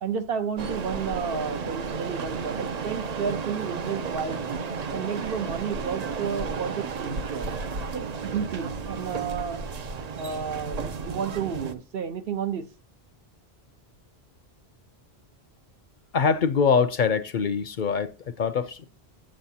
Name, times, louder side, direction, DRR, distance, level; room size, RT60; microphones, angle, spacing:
voice 1, 0.0-4.6 4.9-7.5 7.9-9.7 10.2-12.7, right 7 dB, 65° right, 1.0 m, -31 dB
sound 1, 0.6-11.7, right 5 dB, 45° right, 0.6 m, -33 dB
voice 2, 16.1-18.8, left 6 dB, 55° left, 0.7 m, -24 dB
9.0 x 7.5 x 2.8 m
omnidirectional pair, 1.1 m